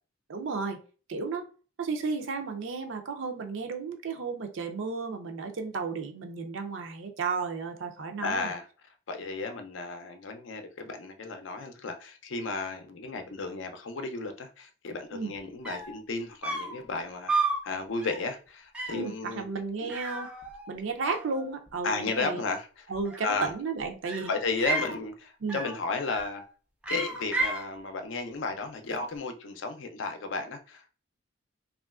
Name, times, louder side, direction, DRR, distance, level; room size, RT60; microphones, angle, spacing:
voice 1, 0.3-0.8 1.1-1.5 1.8-8.5 15.1-15.3 18.9-20.3 20.7-22.4 22.9-24.3 25.4-25.6, right 4 dB, 70° right, 0.5 m, -33 dB
voice 2, 8.2-8.7 9.1-17.3 17.6-19.4 19.8-19.9 21.8-22.9 23.2-23.5 24.3-26.4 26.9-30.9, left 3 dB, 70° left, 0.5 m, -34 dB
sound 1, 15.4-15.5 15.6-16.0 16.4-16.8 17.3-17.6 18.0-18.3 18.7-19.1 19.9-20.8 21.0-21.7 22.9-23.6 24.0-25.0 25.5-25.8 26.1-26.5 26.8-27.7, right 3 dB, 5° right, 0.4 m, -32 dB
3.0 x 2.4 x 2.3 m
head